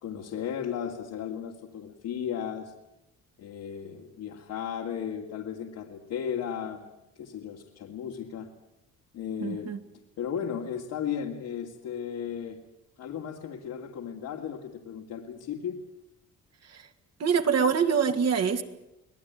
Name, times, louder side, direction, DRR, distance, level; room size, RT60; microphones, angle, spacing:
voice 1, 0.0-2.7 3.4-6.9 7.2-8.5 9.1-9.7 10.2-12.6 13.0-15.8, left 8 dB, 85° left, -1 dB, 2.8 m, -35 dB
voice 2, 9.4-9.8 16.7-16.9 17.2-18.6, right 6 dB, 55° right, 5 dB, 2.7 m, -25 dB
25.0 x 18.0 x 9.7 m, 0.92 s
cardioid pair, 90°, 30 cm